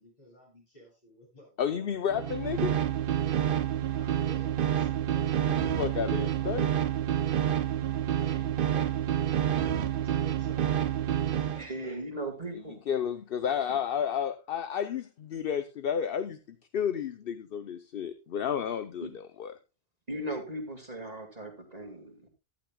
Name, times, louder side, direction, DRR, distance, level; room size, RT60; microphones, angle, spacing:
voice 1, 0.0-1.8 2.6-2.9 3.9-5.7 6.1-6.5 8.1-9.1 9.5-9.8 10.0-11.0 11.3-12.0, left 1 dB, 40° left, -2 dB, 8.0 m, -53 dB
voice 2, 1.6-2.7 5.5-6.7 12.9-19.5, left 8 dB, 65° left, 10 dB, 0.9 m, -31 dB
sound 1, 2.1-11.6, right 10 dB, 60° right, 0.8 m, -28 dB
voice 3, 11.6-12.8 13.7-13.8 19.0-19.1 20.1-22.3, right 1 dB, 40° right, 3 dB, 2.0 m, -38 dB
15.0 x 11.5 x 2.3 m, 0.27 s
omnidirectional pair, 1.1 m